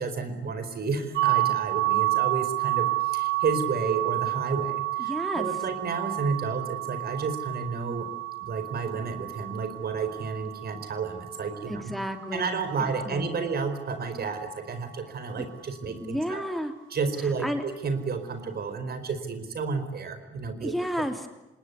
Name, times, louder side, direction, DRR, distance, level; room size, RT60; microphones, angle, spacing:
voice 1, 0.0-8.1 8.4-11.9 12.3-16.4 16.9-20.7, right 4 dB, 50° right, 10 dB, 4.8 m, -31 dB
sound 1, 1.2-12.9, right 18 dB, 85° right, 1.4 m, -30 dB
voice 2, 5.0-5.5 11.7-13.5 15.9-16.7 17.4-17.6 20.6-21.3, equal, ahead, 6 dB, 3.0 m, -32 dB
27.0 x 20.0 x 9.6 m, 1.0 s
cardioid pair, 90°, 20 cm